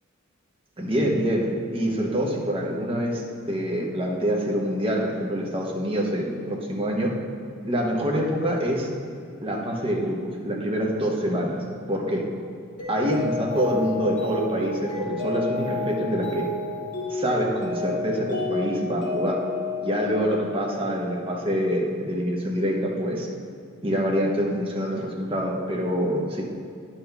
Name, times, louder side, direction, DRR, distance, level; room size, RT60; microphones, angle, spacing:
voice 1, 0.8-7.1 7.6-8.9 9.4-12.2 12.9-16.4 17.1-19.4 19.8-23.3 23.8-26.4, equal, 25° right, -1 dB, 1.0 m, -26 dB
Mallet percussion, 12.8-20.9, left 3 dB, 40° left, 2.0 m, -31 dB
10.0 x 5.8 x 3.5 m, 2.4 s
head